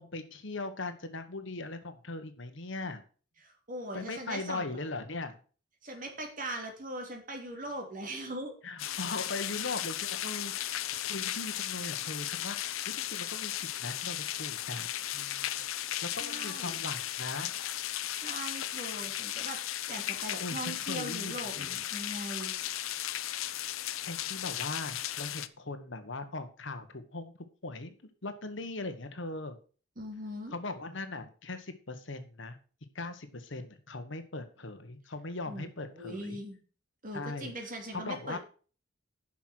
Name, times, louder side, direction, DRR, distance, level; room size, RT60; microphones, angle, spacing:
voice 1, 0.0-3.0 3.9-5.4 8.6-10.7 11.1-15.6 16.0-17.5 20.4-21.8 24.1-27.3 27.6-27.9 28.2-29.6 30.5-32.6 32.9-36.4 37.1-38.4, left 2 dB, 65° left, 9 dB, 1.3 m, -39 dB
voice 2, 3.4-4.8 5.8-8.5 15.9-16.8 18.1-19.6 19.9-22.6 30.0-30.5 35.5-36.6 37.0-38.4, right 1 dB, 40° right, 2 dB, 3.0 m, -40 dB
sound 1, 8.8-25.5, left 12 dB, 85° left, 0.6 m, -36 dB
10.0 x 6.2 x 6.4 m, 0.39 s
head